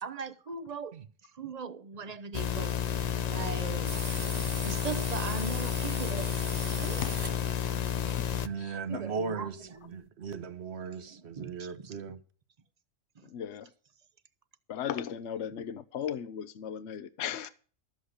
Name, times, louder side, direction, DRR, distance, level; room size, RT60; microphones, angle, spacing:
voice 1, 0.0-4.0 4.6-7.0 8.7-10.0 11.0-12.0 13.2-13.3, right 5 dB, 40° right, 0.7 m, -40 dB
sound 1, 2.3-8.5, left 9 dB, 45° left, 0.6 m, -31 dB
sound 2, 3.9-7.9, right 2 dB, 20° right, 1.3 m, -41 dB
voice 2, 7.0-7.4 8.0-8.3 8.6-9.1 13.2-13.7 14.7-17.5, left 9 dB, 65° left, 1.0 m, -37 dB
voice 3, 8.4-9.6 9.9-12.2, right 5 dB, 60° right, 1.3 m, -37 dB
13.0 x 8.0 x 6.5 m
omnidirectional pair, 1.3 m